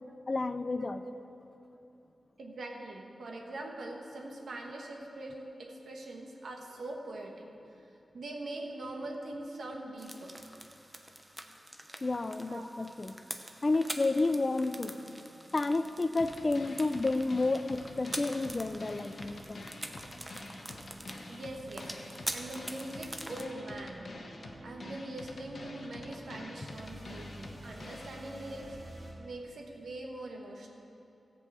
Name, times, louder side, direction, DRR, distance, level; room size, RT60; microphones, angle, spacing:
voice 1, 0.3-1.0 12.0-13.1 13.6-14.9 15.5-19.6 27.2-27.3, left 3 dB, 35° left, 11 dB, 0.4 m, -30 dB
voice 2, 0.9-1.2 2.4-7.5 7.8-7.9 8.1-10.3 12.5-12.7 21.3-21.9 22.3-24.1 24.6-30.7, right 1 dB, 80° right, 1 dB, 1.4 m, -42 dB
sound 1, 10.0-23.4, right 1 dB, 15° right, 0.8 m, -45 dB
sound 2, 14.2-29.1, right 1 dB, 45° right, 2.8 m, -52 dB
sound 3, 16.2-28.2, left 2 dB, 60° left, 1.2 m, -47 dB
14.5 x 5.4 x 7.9 m, 2.8 s
wide cardioid pair, 80°, 0 cm